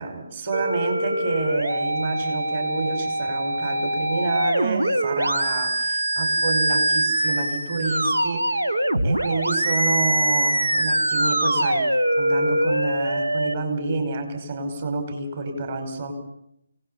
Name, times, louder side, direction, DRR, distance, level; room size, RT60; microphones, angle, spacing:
voice 1, 0.0-11.9 12.2-16.1, right 3 dB, 40° right, 6 dB, 5.4 m, -29 dB
sound 1, 0.5-13.5, right 1 dB, 80° right, 1.5 m, -23 dB
28.0 x 19.0 x 5.7 m, 0.74 s
figure-of-eight pair, 145°, 0 cm